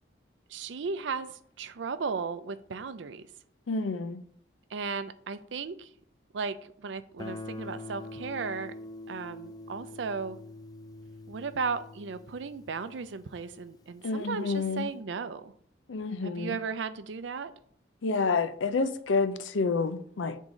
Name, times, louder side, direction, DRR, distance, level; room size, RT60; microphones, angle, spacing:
voice 1, 0.5-3.2 4.7-5.9 6.3-8.7 9.1-10.4 11.3-15.5 16.2-17.5, right 5 dB, 75° right, 0.5 m, -35 dB
voice 2, 3.7-4.2 14.0-14.9 15.9-16.6 18.0-20.4, left 4 dB, 85° left, 0.5 m, -29 dB
Guitar, 7.2-13.9, left 2 dB, 20° left, 0.3 m, -44 dB
8.9 x 3.6 x 3.8 m
head